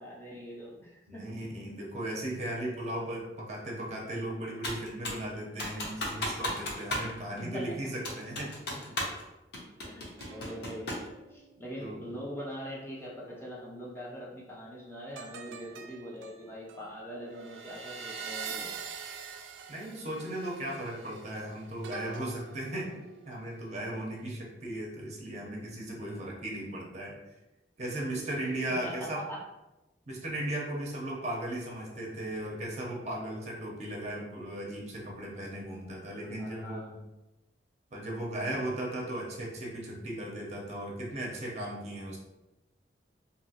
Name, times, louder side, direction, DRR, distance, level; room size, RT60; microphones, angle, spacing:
voice 1, 0.0-1.2 7.5-7.8 9.9-11.0 11.3-18.7 28.8-29.4 36.4-37.0, equal, 15° left, -5 dB, 0.5 m, -42 dB
voice 2, 1.1-8.5 8.9-9.0 11.8-12.0 19.7-22.9 23.3-27.1 27.8-29.2 30.1-36.9 37.9-42.2, right 1 dB, 40° right, -2 dB, 0.6 m, -36 dB
Computer keyboard, 4.6-5.3 5.6-7.1 7.4-7.5 8.0-9.2 9.5-11.1, left 1 dB, 60° left, 0.7 m, -35 dB
sound 1, 10.2-13.8 15.2-23.7 24.1-24.4, right 5 dB, 90° right, 0.4 m, -45 dB
2.9 x 2.7 x 2.8 m, 1.0 s
head